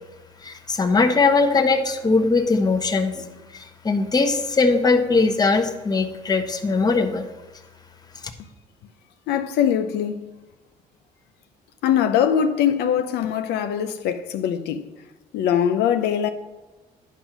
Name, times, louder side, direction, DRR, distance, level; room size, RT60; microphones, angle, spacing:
voice 1, 0.4-3.2 3.5-7.3, left 3 dB, 25° left, 1.1 m, -20 dB
voice 2, 9.3-10.3 11.8-14.8 15.3-16.3, left 9 dB, 80° left, 0.6 m, -22 dB
10.5 x 5.5 x 6.0 m
cardioid pair, 110°, 17 cm